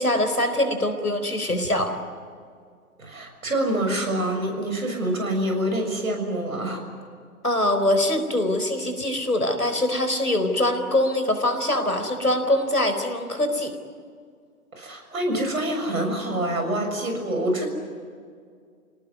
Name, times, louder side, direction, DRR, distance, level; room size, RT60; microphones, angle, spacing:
voice 1, 0.0-2.0 7.4-13.7, left 1 dB, 85° left, 7 dB, 4.4 m, -23 dB
voice 2, 3.0-6.8 14.7-17.7, right 1 dB, 70° right, 4 dB, 7.0 m, -26 dB
29.5 x 18.5 x 9.5 m, 2.1 s
figure-of-eight pair, 125°, 44 cm